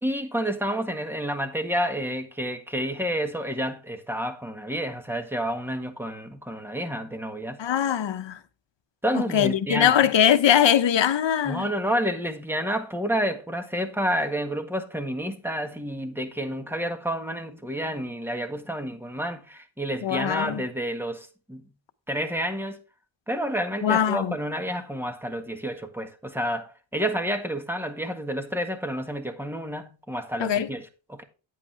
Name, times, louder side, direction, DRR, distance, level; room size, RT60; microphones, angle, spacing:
voice 1, 0.0-7.6 9.0-10.1 11.4-21.6 22.1-22.8 23.3-31.2, equal, 5° right, 1.6 m, -29 dB
voice 2, 7.6-8.4 9.3-11.7 20.0-20.6 23.8-24.4 30.4-30.7, left 9 dB, 70° left, 1.0 m, -21 dB
9.6 x 8.5 x 3.4 m
wide cardioid pair, 90°, 45 cm